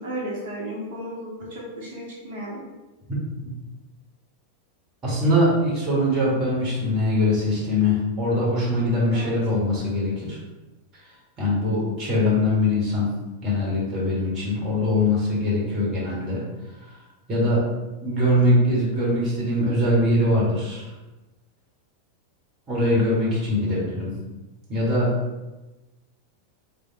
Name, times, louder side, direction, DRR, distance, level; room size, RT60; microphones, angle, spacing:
voice 1, 0.0-2.6 9.0-9.3, right 1 dB, 50° right, -5 dB, 1.1 m, -34 dB
voice 2, 5.0-10.4 11.4-13.1 13.4-16.4 16.8-16.9 17.3-17.6 18.0-20.9 22.7-24.1 24.7-25.1, left 1 dB, 30° right, -5 dB, 1.4 m, -22 dB
3.4 x 3.0 x 2.8 m, 1.1 s
figure-of-eight pair, 90°, 0 cm